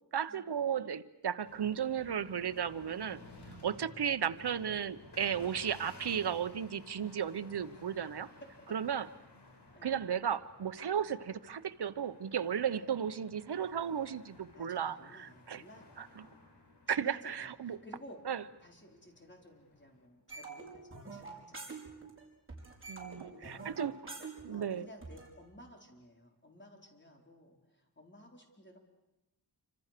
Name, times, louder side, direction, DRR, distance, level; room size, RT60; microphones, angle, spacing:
voice 1, 0.1-3.2 3.6-8.3 8.7-9.1 9.8-15.6 16.0-16.3 16.9-17.8 18.3-18.4 22.9-24.2 24.4-24.9, right 8 dB, 80° right, 12 dB, 1.0 m, -35 dB
sound 1, 1.5-20.1, left 2 dB, 85° left, 4.3 m, -56 dB
voice 2, 3.7-4.1 5.3-5.6 9.7-10.0 12.7-12.9 14.5-16.4 16.9-18.2 18.6-21.9 23.3-23.8 24.5-28.8, equal, 30° left, 2 dB, 4.3 m, -56 dB
sound 2, 20.3-22.2 22.5-25.3, right 4 dB, 30° right, 5.3 m, -46 dB
27.5 x 26.0 x 6.7 m, 0.96 s
wide cardioid pair, 110°, 39 cm